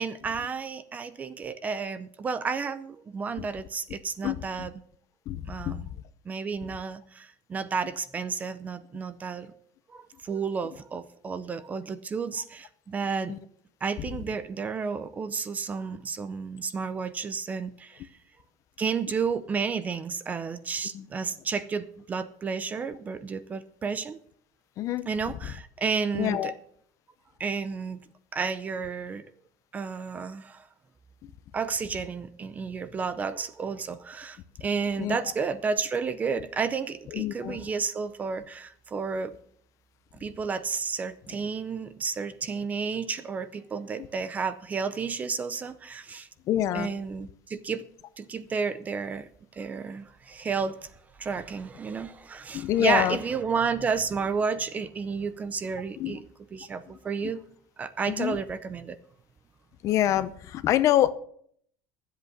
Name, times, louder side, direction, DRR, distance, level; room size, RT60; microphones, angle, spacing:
voice 1, 0.0-4.8 5.5-5.9 6.3-9.5 9.9-13.4 13.8-18.1 18.8-24.2 25.1-26.5 27.4-28.0 28.3-29.3 29.7-30.6 31.5-39.3 40.2-46.3 46.7-47.8 48.2-50.9 51.2-56.2 56.5-57.4 57.8-59.0, right 5 dB, 20° right, 0.6 m, -31 dB
voice 2, 4.2-4.7 5.3-5.8 13.3-13.4 20.9-21.1 24.8-25.0 26.1-26.5 35.0-35.2 37.1-37.6 46.5-46.9 52.5-53.2 56.0-56.2 58.1-58.4 59.8-61.1, left 12 dB, 40° left, 0.7 m, -26 dB
12.5 x 8.1 x 6.1 m
cardioid pair, 170°, 8 cm